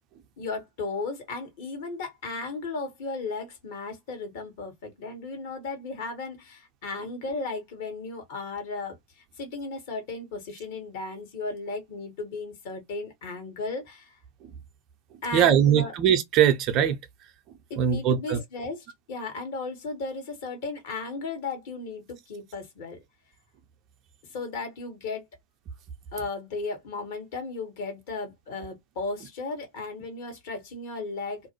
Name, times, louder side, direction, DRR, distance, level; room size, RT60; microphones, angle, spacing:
voice 1, 0.4-14.2 15.2-15.9 17.7-23.0 24.3-25.3 26.1-31.4, left 3 dB, 50° left, 1.2 m, -35 dB
voice 2, 15.3-17.0 17.8-18.4, right 9 dB, 35° right, 0.5 m, -21 dB
2.5 x 2.1 x 2.9 m
figure-of-eight pair, 90°, 0 cm